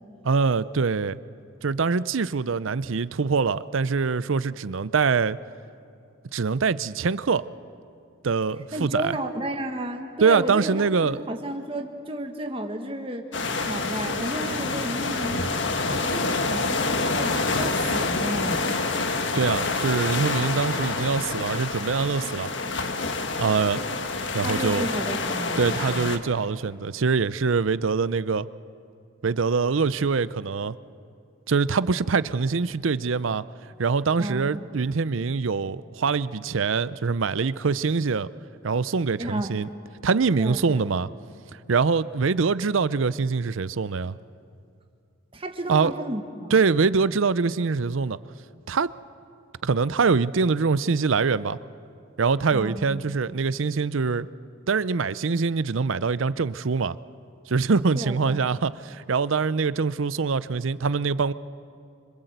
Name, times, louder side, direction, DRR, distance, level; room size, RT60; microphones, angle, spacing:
voice 1, 0.2-1.2 1.6-5.4 6.3-7.4 8.2-9.2 10.2-11.2 19.3-22.5 23.4-23.8 24.3-24.9 25.6-28.5 29.2-30.7 31.5-33.4 33.8-38.3 38.6-39.7 40.0-41.1 41.7-44.1 45.7-45.9 46.5-48.2 48.7-48.9 49.6-51.6 52.2-54.3 54.7-57.0 57.5-61.3, right 5 dB, 75° right, 17 dB, 0.6 m, -24 dB
voice 2, 8.7-13.2 13.6-15.5 15.9-18.8 24.4-26.1 34.2-34.6 39.2-39.6 40.4-40.8 45.3-46.5 52.5-53.2 57.9-58.4, right 1 dB, 25° right, 4 dB, 1.5 m, -33 dB
sound 1, 13.3-26.2, left 3 dB, 60° left, 1.5 m, -27 dB
26.0 x 25.0 x 8.0 m, 2.5 s
head